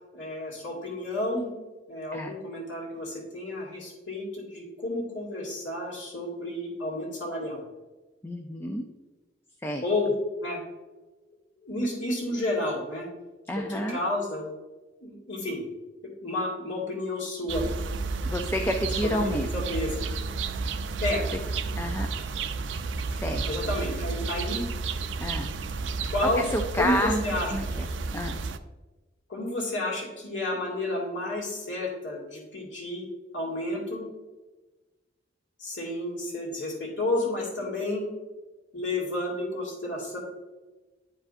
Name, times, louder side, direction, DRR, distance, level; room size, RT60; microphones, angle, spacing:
voice 1, 0.1-1.5 1.9-7.6 9.8-10.6 11.6-13.1 13.6-14.5 15.0-15.6 16.2-17.7 19.2-20.1 21.0-21.2 23.5-24.6 26.1-26.4 26.8-27.7 29.3-33.0 33.3-34.0 35.6-38.0 38.7-40.2, left 1 dB, 85° left, -3 dB, 2.3 m, -31 dB
voice 2, 8.2-8.8 9.6-9.8 13.5-14.0 18.3-19.5 21.8-22.1 23.1-23.7 25.2-25.5 26.2-27.2 27.5-28.4, equal, 15° left, 3 dB, 0.4 m, -30 dB
sound 1, 17.5-28.6, right 4 dB, 80° right, 0.5 m, -31 dB
11.0 x 4.9 x 2.6 m, 1.2 s
head